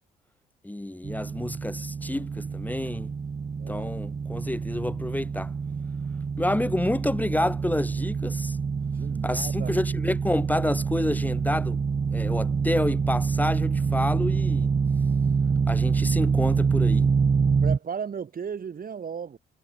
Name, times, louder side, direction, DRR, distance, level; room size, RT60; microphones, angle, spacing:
voice 1, 0.6-3.1 3.7-5.5 6.4-8.6 9.2-11.8 12.1-14.7 15.7-17.1, left 1 dB, 10° left, 2.9 m, -29 dB
sound 1, 1.0-17.8, right 5 dB, 30° right, 0.9 m, -26 dB
voice 2, 3.6-3.9 6.5-6.6 8.8-9.7 17.6-19.4, right 7 dB, 45° right, 3.8 m, -35 dB
cardioid pair, 90°, 20 cm